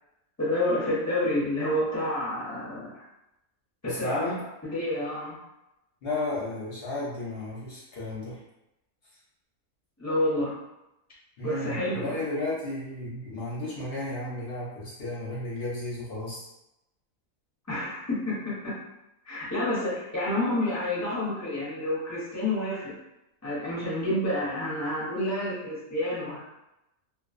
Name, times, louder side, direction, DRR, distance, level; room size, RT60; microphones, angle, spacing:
voice 1, 0.4-3.0 3.8-4.3 4.6-5.4 10.0-10.6 11.4-12.2 17.7-18.8 19.3-22.9 23.4-26.4, left 1 dB, 15° left, -8 dB, 0.6 m, -29 dB
voice 2, 3.8-4.3 6.0-8.4 11.4-16.5, left 2 dB, 55° left, -6 dB, 0.7 m, -33 dB
2.3 x 2.2 x 2.4 m, 0.89 s
omnidirectional pair, 1.6 m